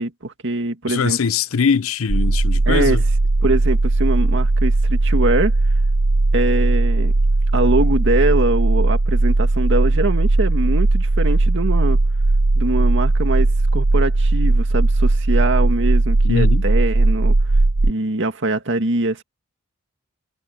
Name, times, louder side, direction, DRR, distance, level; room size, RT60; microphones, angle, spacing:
voice 1, 0.0-1.2 2.7-3.0 3.4-5.5 6.3-7.1 7.5-12.0 12.6-17.4 17.8-19.2, right 2 dB, 60° right, 2.1 m, -23 dB
voice 2, 0.9-3.0 16.2-16.6, left 6 dB, 75° left, 0.6 m, -21 dB
sound 1, 2.1-17.9, right 2 dB, 80° right, 0.9 m, -17 dB
head